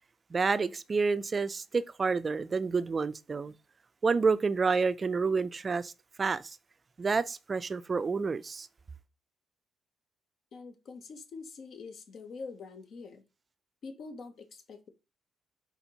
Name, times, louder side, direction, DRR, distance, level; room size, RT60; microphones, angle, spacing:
voice 1, 0.3-3.5 4.0-5.9 6.2-6.6 7.0-8.7, right 4 dB, 35° right, 0.3 m, -29 dB
voice 2, 10.5-13.3 13.8-14.9, left 4 dB, 60° left, 0.8 m, -45 dB
4.2 x 4.1 x 2.9 m
cardioid pair, 90°, 0 cm